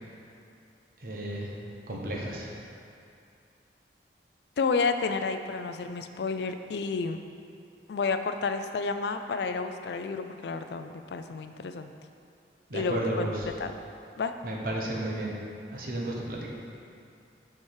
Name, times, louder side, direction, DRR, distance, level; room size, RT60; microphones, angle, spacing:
voice 1, 1.0-1.5 1.9-2.5 12.7-13.5 14.4-15.3 15.7-16.5, right 1 dB, 55° right, -2 dB, 1.1 m, -33 dB
voice 2, 4.6-7.2 7.9-11.9 12.7-13.3 13.6-13.7 14.2-14.3, left 4 dB, 70° left, 8 dB, 0.4 m, -30 dB
7.1 x 4.7 x 4.8 m, 2.5 s
head